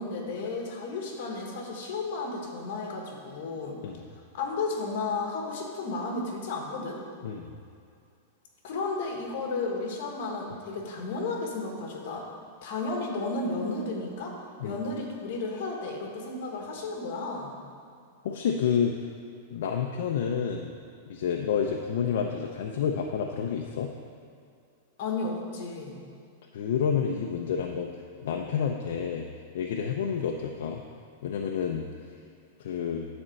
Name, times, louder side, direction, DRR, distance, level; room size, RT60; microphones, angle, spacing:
voice 1, 0.0-3.8 4.3-7.0 8.6-12.2 12.6-14.4 14.6-17.6 25.0-26.0, left 3 dB, 45° left, 0 dB, 1.5 m, -33 dB
voice 2, 18.2-19.1 19.5-20.7 21.1-23.9 26.5-29.2 29.5-30.8 31.2-31.8 32.6-33.1, left 7 dB, 60° left, 2 dB, 0.6 m, -29 dB
10.0 x 4.4 x 6.4 m, 2.4 s
supercardioid pair, 175°, 0 cm